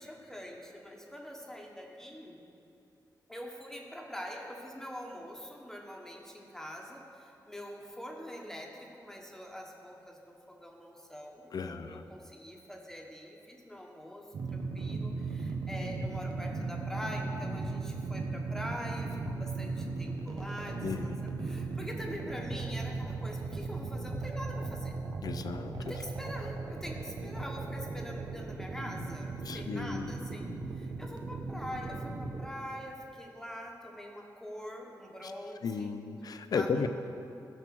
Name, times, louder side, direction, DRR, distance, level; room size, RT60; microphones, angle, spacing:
voice 1, 0.0-2.4 3.3-25.0 25.8-35.9 36.5-36.9, equal, 5° left, 0 dB, 1.4 m, -44 dB
voice 2, 11.5-12.0 20.8-21.4 25.2-25.8 29.4-30.3 35.2-35.3 35.6-36.9, left 5 dB, 60° left, 10 dB, 0.6 m, -35 dB
sound 1, 14.3-32.5, right 3 dB, 70° right, 0.9 m, -37 dB
12.5 x 5.8 x 6.0 m, 2.7 s
cardioid pair, 75°, 7 cm